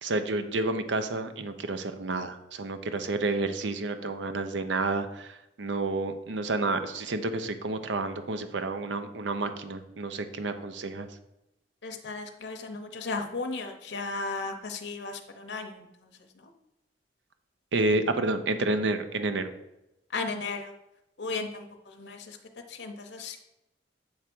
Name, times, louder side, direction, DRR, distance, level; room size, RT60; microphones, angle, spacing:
voice 1, 0.0-11.1 17.7-19.5, right 2 dB, 90° right, 9 dB, 0.6 m, -30 dB
voice 2, 11.8-16.1 16.4-16.5 20.1-20.7 21.2-22.4 22.7-23.4, left 3 dB, 70° left, 4 dB, 0.7 m, -35 dB
8.0 x 3.5 x 6.0 m, 0.90 s
head